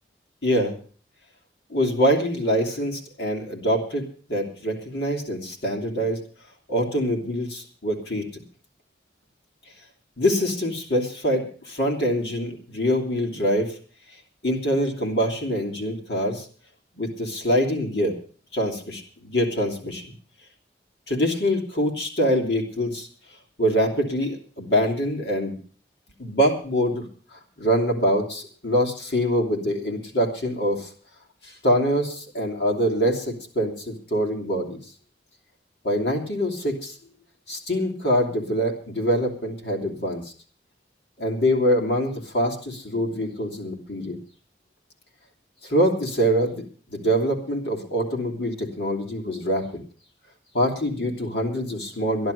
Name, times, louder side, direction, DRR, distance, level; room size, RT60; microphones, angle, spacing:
voice 1, 0.4-0.7 1.7-6.2 6.7-8.4 10.2-13.8 14.4-16.4 16.9-18.1 18.5-20.1 21.1-23.1 23.6-25.5 26.2-27.1 27.3-30.9 31.4-34.8 35.8-36.9 37.5-40.2 41.2-44.2 45.6-46.6 46.9-49.8 50.5-52.3, equal, 70° left, 1 dB, 2.9 m, -24 dB
13.0 x 11.0 x 6.5 m, 0.42 s
head